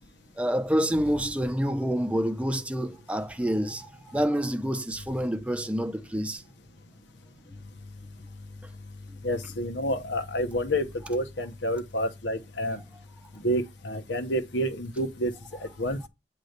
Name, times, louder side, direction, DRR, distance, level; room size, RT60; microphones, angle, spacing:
voice 1, 0.4-6.4, equal, 5° right, 0.7 m, -28 dB
voice 2, 9.2-12.8 13.4-15.3 15.6-16.0, equal, 85° left, 1.0 m, -29 dB
9.0 x 3.1 x 6.5 m
head